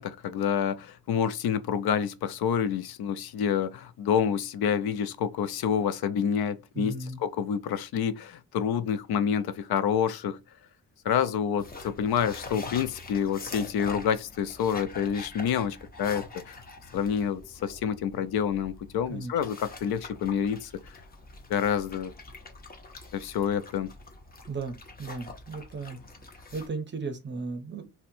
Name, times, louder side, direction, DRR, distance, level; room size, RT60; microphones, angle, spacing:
voice 1, 0.0-6.9 7.2-10.4 11.0-16.6 16.9-21.0 21.5-22.1 23.1-23.9, left 8 dB, 80° left, 0.5 m, -28 dB
voice 2, 6.7-7.2 19.1-19.3 24.5-26.0 26.5-27.9, right 3 dB, 30° right, 0.6 m, -35 dB
sound 1, 11.6-26.7, left 3 dB, 25° left, 0.5 m, -45 dB
4.2 x 2.2 x 2.6 m
wide cardioid pair, 165°, 37 cm